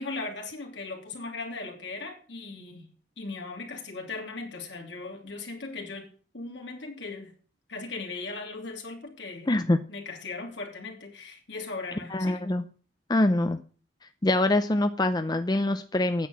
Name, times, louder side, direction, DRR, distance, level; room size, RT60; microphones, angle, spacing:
voice 1, 0.0-2.9 3.2-6.1 6.3-7.3 7.7-9.5 9.9-12.4, left 3 dB, 70° left, 2.9 m, -38 dB
voice 2, 9.5-9.8 12.1-12.6 13.1-13.6 14.2-16.3, left 1 dB, 20° left, 0.6 m, -24 dB
9.4 x 7.7 x 7.4 m
head